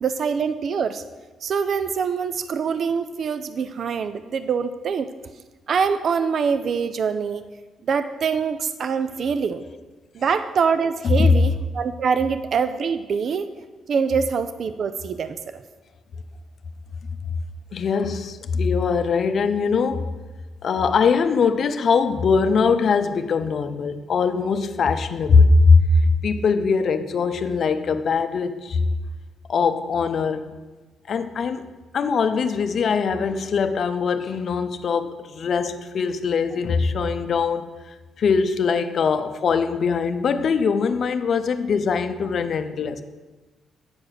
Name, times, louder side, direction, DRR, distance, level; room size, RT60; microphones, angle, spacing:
voice 1, 0.0-1.0 1.4-5.1 5.7-7.4 7.9-9.6 10.1-13.5 13.9-15.6, right 6 dB, 55° right, 11 dB, 0.4 m, -24 dB
voice 2, 11.0-11.3 17.7-20.1 20.6-28.9 29.5-30.4 31.1-31.7 31.9-43.0, left 5 dB, 55° left, 9 dB, 0.6 m, -21 dB
9.4 x 4.8 x 6.2 m, 1.2 s
cardioid pair, 90°, 0 cm